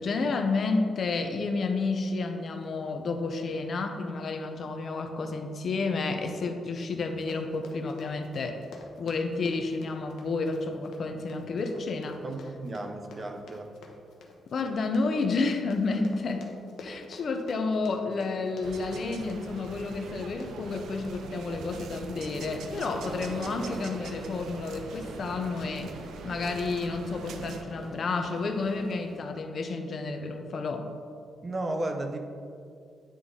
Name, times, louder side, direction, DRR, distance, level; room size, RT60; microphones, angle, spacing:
voice 1, 0.0-8.6 9.0-12.2 14.5-16.5 16.8-25.9 26.2-30.9, left 3 dB, 50° left, 6 dB, 0.6 m, -30 dB
Run, 7.1-24.6 24.9-25.2 25.6-25.9 26.3-26.4, left 3 dB, 80° left, 0.8 m, -50 dB
voice 2, 12.2-13.7 31.4-32.2, right 2 dB, 30° right, 5 dB, 0.6 m, -34 dB
sound 1, 18.6-27.6, right 5 dB, 75° right, 0.4 m, -42 dB
sound 2, 22.2-29.2, right 2 dB, 55° right, 1.0 m, -45 dB
9.6 x 3.8 x 3.7 m, 2.3 s
cardioid pair, 130°, 0 cm